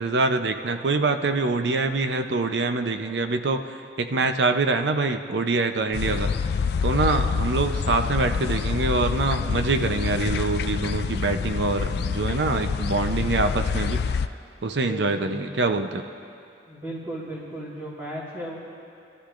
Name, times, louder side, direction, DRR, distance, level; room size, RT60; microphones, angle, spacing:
voice 1, 0.0-6.3 6.8-14.0 14.6-16.0, right 3 dB, 70° right, 7 dB, 0.7 m, -25 dB
sound 1, 5.9-14.3, left 5 dB, 60° left, 0.3 m, -27 dB
voice 2, 14.8-15.7 16.7-18.6, right 1 dB, 25° right, -10 dB, 2.8 m, -35 dB
24.5 x 13.0 x 2.5 m, 2.5 s
head